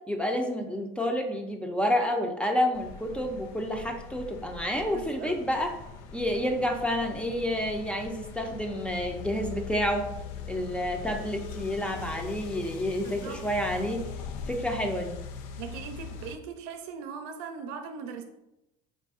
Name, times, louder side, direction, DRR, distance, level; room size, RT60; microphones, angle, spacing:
voice 1, 0.1-5.8 6.1-10.1 10.5-14.0 14.5-15.2, equal, 5° left, 4 dB, 0.5 m, -29 dB
sound 1, 2.7-16.4, left 5 dB, 85° left, 0.4 m, -41 dB
voice 2, 4.9-5.4 13.0-13.4 15.6-18.2, right 6 dB, 80° right, 7 dB, 0.6 m, -39 dB
3.9 x 2.5 x 3.6 m, 0.90 s
supercardioid pair, 100°, 19 cm